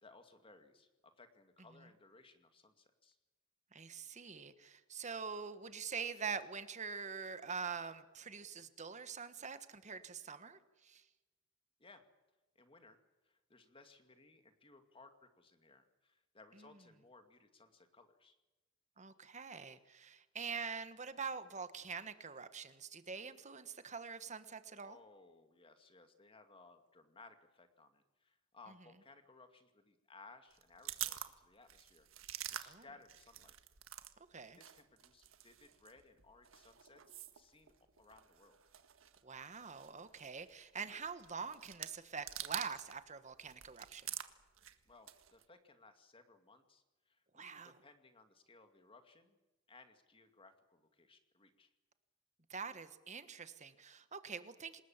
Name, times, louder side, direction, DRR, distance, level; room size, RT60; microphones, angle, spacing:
voice 1, 0.0-3.2 11.8-12.0 12.6-13.0 13.3-18.4 24.8-33.6 34.0-34.2 34.6-37.0 37.3-38.6 44.9-49.4 49.7-51.7, left 3 dB, 25° left, 7 dB, 2.4 m, -62 dB
voice 2, 3.7-11.0 16.6-16.7 19.0-25.0 32.6-32.8 34.2-34.6 39.2-44.1 47.3-47.7 52.5-54.8, right 5 dB, 35° right, 11 dB, 1.5 m, -45 dB
sound 1, 30.5-34.1 34.4-43.0 43.3-45.4, right 12 dB, 70° right, 1.6 m, -48 dB
27.5 x 20.0 x 7.5 m, 1.1 s
head